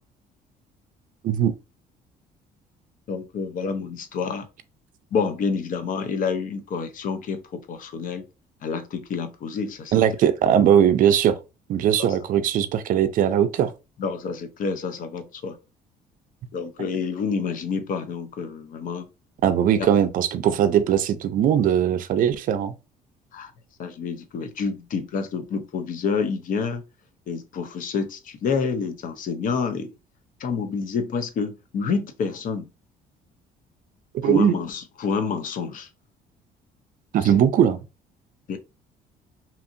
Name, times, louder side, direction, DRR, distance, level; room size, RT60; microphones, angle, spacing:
voice 1, 3.1-4.5 5.1-8.2 8.6-9.9 12.0-12.2 14.0-15.6 16.5-19.1 19.7-19.9 23.3-23.5 23.8-26.8 27.3-29.9 30.4-32.6 34.2-35.9 37.2-37.3 38.5-38.6, left 5 dB, 55° left, 0.6 m, -28 dB
voice 2, 9.9-11.4 11.7-13.7 19.4-22.7 34.2-34.5 37.1-37.8, right 9 dB, 55° right, 0.4 m, -20 dB
2.8 x 2.7 x 2.5 m
cardioid pair, 110°, 17 cm